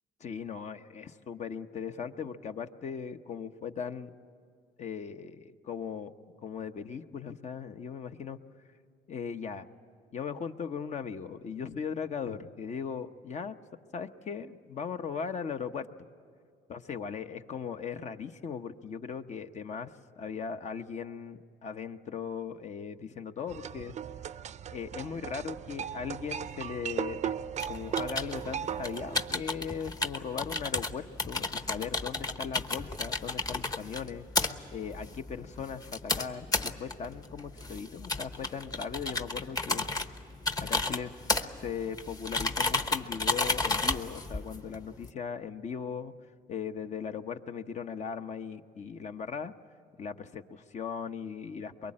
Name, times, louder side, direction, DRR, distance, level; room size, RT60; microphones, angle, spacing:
voice 1, 0.2-4.1 4.8-6.1 6.4-8.4 9.1-9.7 10.1-13.5 13.9-15.9 16.7-23.9 24.7-27.3 27.7-34.2 34.7-39.9 40.6-41.1 41.6-46.1 46.5-49.5 50.0-51.9, left 6 dB, 45° left, 8 dB, 0.9 m, -38 dB
sound 1, 23.5-29.4, right 9 dB, 45° right, 0.6 m, -37 dB
sound 2, 27.6-45.1, left 3 dB, 20° left, 1.0 m, -33 dB
23.5 x 22.5 x 8.7 m, 2.2 s
cardioid pair, 110°, 17 cm